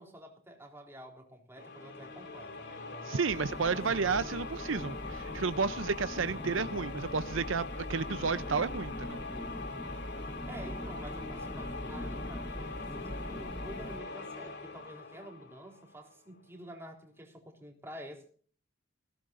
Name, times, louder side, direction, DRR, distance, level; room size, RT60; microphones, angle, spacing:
voice 1, 0.0-4.4 10.5-18.3, right 1 dB, 10° right, 2 dB, 3.6 m, -49 dB
sound 1, 1.6-16.2, left 3 dB, 55° left, 2.7 m, -42 dB
voice 2, 3.1-9.2, right 5 dB, 65° right, 13 dB, 0.6 m, -32 dB
sound 2, 3.3-14.0, equal, 10° left, 0.6 m, -42 dB
20.5 x 17.0 x 2.6 m, 0.43 s
head